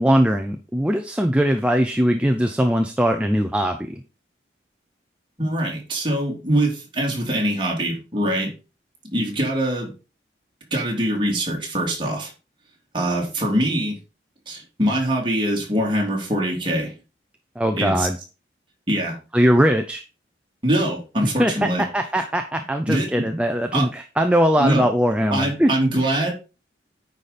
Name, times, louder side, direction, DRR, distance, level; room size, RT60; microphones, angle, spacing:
voice 1, 0.0-4.0 17.6-18.2 19.3-20.0 21.4-25.7, equal, 5° right, 5 dB, 0.5 m, -20 dB
voice 2, 5.4-8.5 9.0-9.9 10.7-12.3 12.9-14.0 14.5-16.9 17.7-18.1 18.9-19.2 20.6-21.9 22.9-23.3 23.7-23.9 24.6-24.9 25.3-26.3, right 1 dB, 25° right, -2 dB, 2.8 m, -23 dB
9.5 x 5.1 x 4.2 m, 0.31 s
head